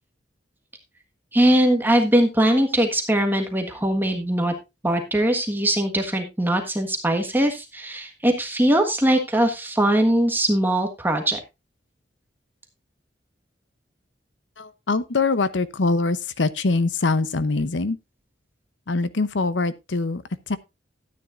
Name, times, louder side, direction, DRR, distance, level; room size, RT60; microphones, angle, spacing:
voice 1, 1.3-4.5 4.8-11.4, right 1 dB, 10° right, 1.5 m, -21 dB
voice 2, 14.6-18.0 18.9-20.6, left 3 dB, 80° left, 0.8 m, -23 dB
12.5 x 9.7 x 2.5 m
head